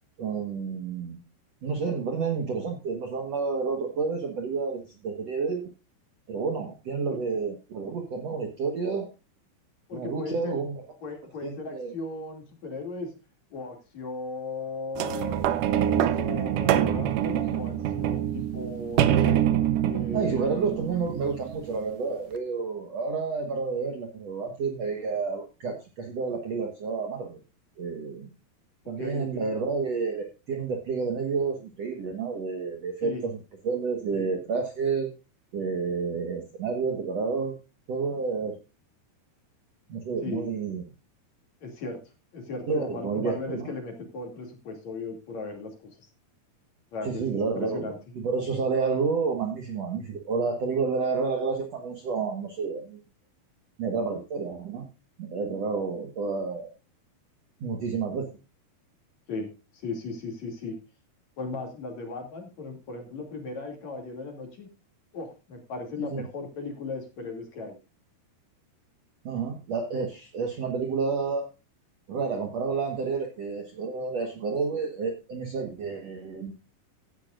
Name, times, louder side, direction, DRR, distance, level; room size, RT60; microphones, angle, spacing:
voice 1, 0.2-1.2 1.6-5.7 6.3-9.1 9.9-10.8 11.4-11.9 20.1-27.4 27.8-28.3 28.9-33.3 33.6-35.1 35.5-37.5 37.9-38.6 39.9-40.8 42.7-43.7 47.0-47.8 48.2-53.0 53.8-54.9 55.2-56.7 57.6-58.3 66.1-66.2 69.2-71.4 72.1-76.5, right 5 dB, 60° right, 3 dB, 1.9 m, -30 dB
voice 2, 9.9-10.6 11.0-13.1 13.5-15.4 15.9-19.4 19.8-20.5 29.0-29.5 33.0-33.2 34.1-34.3 40.2-40.5 41.6-42.0 42.3-46.1 46.9-48.0 59.3-59.5 59.7-60.8 61.4-64.7 65.1-67.8, left 3 dB, 45° left, 3 dB, 3.5 m, -37 dB
sound 1, 15.0-21.7 22.4-22.5, right 10 dB, 75° right, 2.0 m, -25 dB
16.0 x 10.5 x 2.5 m, 0.30 s
omnidirectional pair, 4.7 m